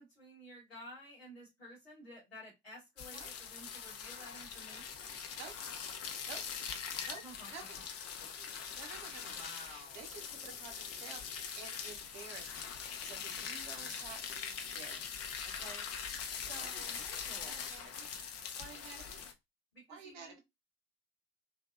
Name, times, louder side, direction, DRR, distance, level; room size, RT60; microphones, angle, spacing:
voice 1, 0.0-5.2 6.9-7.5 9.4-10.0 16.6-17.7 19.7-20.4, left 1 dB, 85° left, 1.3 m, -53 dB
sound 1, 3.0-19.3, left 7 dB, 50° left, 0.6 m, -42 dB
voice 2, 7.5-7.8 8.4-15.2 15.5-15.9 16.3-17.0 17.4-18.1 18.6-19.2 19.9-20.4, right 5 dB, 70° right, 0.8 m, -51 dB
2.7 x 2.1 x 2.4 m
figure-of-eight pair, 40°, 30 cm